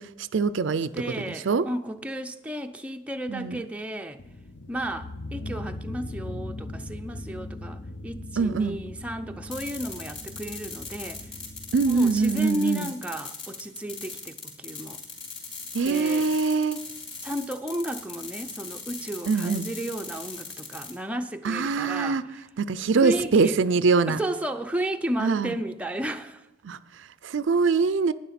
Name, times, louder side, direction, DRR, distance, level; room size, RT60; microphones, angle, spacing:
voice 1, 0.0-1.7 3.3-3.6 8.4-8.8 11.7-12.9 15.7-16.8 19.3-19.7 21.4-22.2 22.6-24.2 25.2-25.5 26.6-28.1, right 4 dB, 70° right, 0.4 m, -24 dB
voice 2, 0.9-4.2 4.7-11.3 11.9-15.0 15.8-16.3 17.2-22.2 22.9-23.6 24.1-26.5, right 1 dB, 5° right, 0.5 m, -33 dB
sound 1, 4.2-12.4, left 1 dB, 55° left, 0.7 m, -39 dB
sound 2, 9.5-20.9, left 4 dB, 30° left, 3.6 m, -39 dB
11.0 x 9.7 x 5.8 m
head